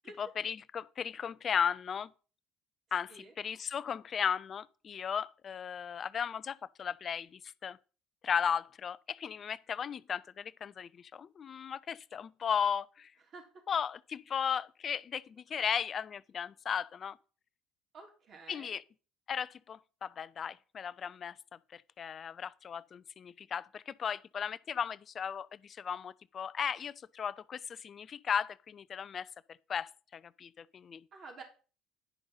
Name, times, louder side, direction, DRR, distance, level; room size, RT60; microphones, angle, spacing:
voice 1, 0.2-2.1 2.9-7.8 8.2-13.1 13.7-17.2 18.5-18.8 19.3-21.3 21.7-29.3 29.7-31.0, left 7 dB, 45° left, 0.5 m, -36 dB
voice 2, 17.9-18.8 31.1-31.4, right 3 dB, 50° right, 3.4 m, -50 dB
10.5 x 5.3 x 5.6 m
hypercardioid pair, 60°, 0 cm